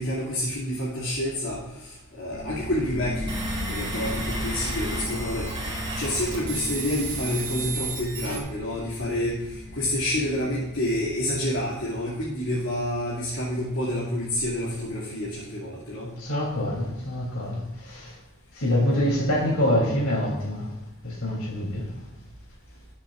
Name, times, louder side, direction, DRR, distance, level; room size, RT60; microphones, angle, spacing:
voice 1, 0.0-3.3 3.6-5.5 5.9-16.1, left 1 dB, 65° left, 2.5 m, -28 dB
sound 1, 2.3-13.7, left 1 dB, 40° left, 1.7 m, -36 dB
sound 2, 3.3-8.4, right 4 dB, 25° right, 2.4 m, -34 dB
voice 2, 16.2-18.2 18.5-20.7 21.0-21.9, left 1 dB, 85° left, 3.3 m, -25 dB
19.5 x 7.3 x 2.5 m
head